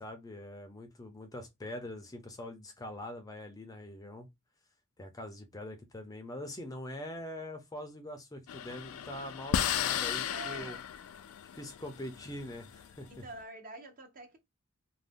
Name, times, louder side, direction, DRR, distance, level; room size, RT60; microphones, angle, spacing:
voice 1, 0.0-4.3 5.0-10.8 11.6-13.2, left 1 dB, 15° left, 0.5 m, -43 dB
sound 1, 8.5-13.1, left 9 dB, 80° left, 0.3 m, -35 dB
voice 2, 10.3-10.8 13.1-14.4, right 2 dB, 40° right, 0.7 m, -46 dB
2.5 x 2.1 x 3.4 m
head